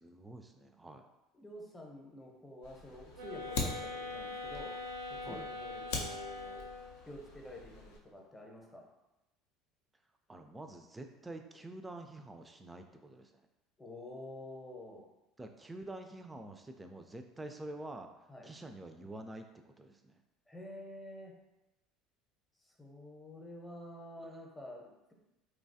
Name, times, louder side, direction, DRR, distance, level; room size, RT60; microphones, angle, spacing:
voice 1, 0.0-1.1 5.2-5.5 10.3-13.3 15.4-18.1 18.4-20.2 24.2-24.4, right 2 dB, 15° right, 6 dB, 0.3 m, -47 dB
voice 2, 1.3-4.7 5.1-6.6 7.0-8.8 13.8-15.1 18.3-18.5 20.5-21.3 22.6-25.1, left 1 dB, 15° left, 0 dB, 0.7 m, -49 dB
Fire, 2.6-8.0, left 3 dB, 75° left, 0.5 m, -43 dB
sound 1, 3.1-7.0, left 2 dB, 75° right, 0.5 m, -42 dB
3.0 x 2.3 x 2.7 m, 0.96 s
hypercardioid pair, 70°, 0 cm